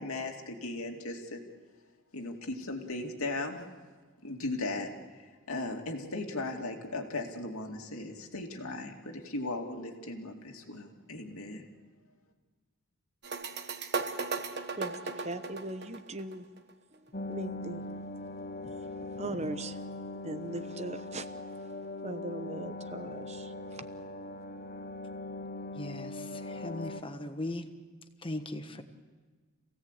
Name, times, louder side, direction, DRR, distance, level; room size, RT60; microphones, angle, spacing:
voice 1, 0.0-1.4 2.1-3.7 4.2-11.7, left 2 dB, 75° left, 2.5 m, -37 dB
sound 1, 13.2-16.7, right 4 dB, 50° right, 1.3 m, -36 dB
voice 2, 15.2-16.4 17.3-17.8 19.2-19.7 20.2-21.3 22.0-23.5, right 2 dB, 30° right, 0.9 m, -38 dB
sound 2, 17.1-27.0, left 2 dB, 40° left, 1.0 m, -40 dB
voice 3, 25.7-27.7 28.2-28.8, left 1 dB, 25° left, 1.3 m, -38 dB
27.0 x 17.0 x 8.2 m
head